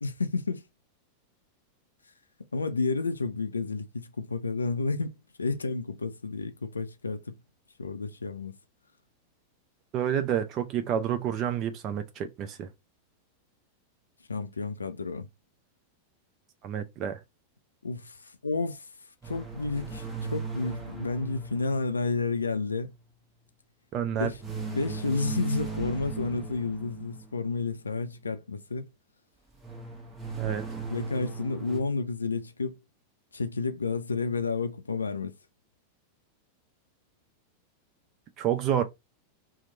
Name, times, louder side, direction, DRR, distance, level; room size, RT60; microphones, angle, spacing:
voice 1, 0.0-0.6 2.5-7.4 7.8-8.6 14.3-15.3 17.8-18.9 19.2-22.9 24.2-24.4 24.7-28.9 30.9-32.8 33.3-35.4, left 3 dB, 75° left, 0.3 m, -31 dB
voice 2, 9.9-12.7 16.6-17.2 23.9-24.3 30.4-30.6 38.4-38.8, right 9 dB, 35° right, 0.4 m, -29 dB
sound 1, 19.2-22.8 24.4-27.5 29.6-31.8, right 4 dB, 15° right, 0.8 m, -38 dB
2.9 x 2.0 x 3.8 m
figure-of-eight pair, 90°, 0 cm